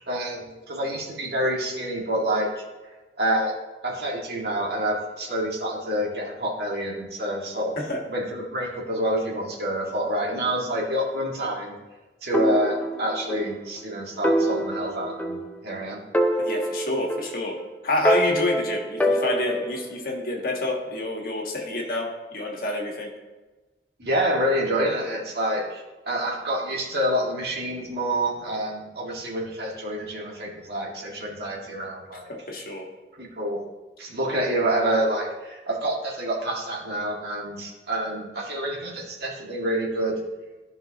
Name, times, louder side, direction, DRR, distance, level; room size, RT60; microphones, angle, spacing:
voice 1, 0.0-2.6 3.2-3.5 3.8-7.7 8.1-11.7 12.2-16.0 24.0-32.3 33.2-33.6 34.0-40.2, right 1 dB, 60° right, -3 dB, 1.9 m, -27 dB
sound 1, 12.3-13.5 13.8-13.9 14.2-15.8 16.1-17.6 18.0-19.9, right 1 dB, 10° left, 0.6 m, -25 dB
voice 2, 16.4-17.6 17.8-23.1 32.5-32.9, left 2 dB, 50° left, 0 dB, 1.5 m, -28 dB
14.0 x 5.4 x 2.9 m, 1.2 s
head